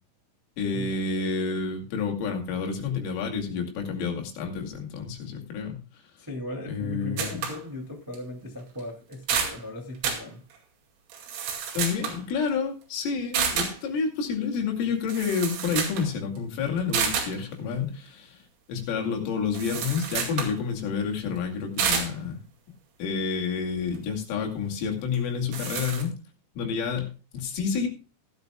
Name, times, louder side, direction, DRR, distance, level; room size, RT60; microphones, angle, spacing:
voice 1, 0.6-5.8 6.7-7.4 11.7-18.4 18.7-22.4 23.0-26.1 26.6-27.9, left 5 dB, 80° left, 2 dB, 5.0 m, -29 dB
voice 2, 6.2-10.4, left 1 dB, 20° right, 0 dB, 0.5 m, -37 dB
sound 1, 7.2-7.6 8.1-8.2 8.8-8.9 9.1-9.6 10.0-10.3 11.1-12.2 13.3-13.8 14.8-14.9 15.1-16.1 16.4-16.5 16.9-17.4 19.5-20.6 21.8-22.1 25.1-25.2 25.5-26.0, right 7 dB, 80° right, 5.0 m, -29 dB
17.5 x 12.5 x 2.3 m, 0.33 s
omnidirectional pair, 5.7 m